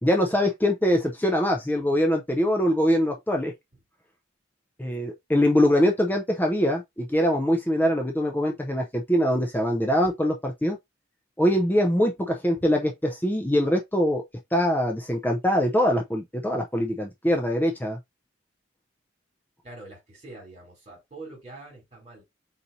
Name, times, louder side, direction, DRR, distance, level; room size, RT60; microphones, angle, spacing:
voice 1, 0.0-3.5 4.8-10.8 11.4-14.2 14.5-18.0, equal, 10° left, 0.5 m, -23 dB
voice 2, 19.6-22.2, right 2 dB, 35° right, 2.9 m, -45 dB
4.2 x 4.1 x 2.7 m
head